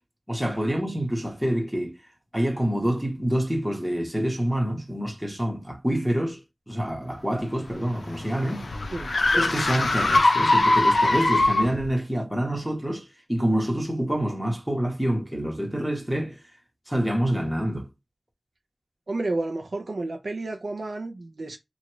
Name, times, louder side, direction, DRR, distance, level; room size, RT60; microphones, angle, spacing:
voice 1, 0.3-2.0 2.3-8.7 9.3-16.4 16.9-17.9, equal, 5° right, 1.2 m, -27 dB
sound 1, 7.4-11.9, left 2 dB, 85° left, 0.5 m, -22 dB
voice 2, 19.1-21.6, right 2 dB, 70° right, 0.5 m, -31 dB
3.1 x 2.4 x 3.1 m
wide cardioid pair, 65°, 0 cm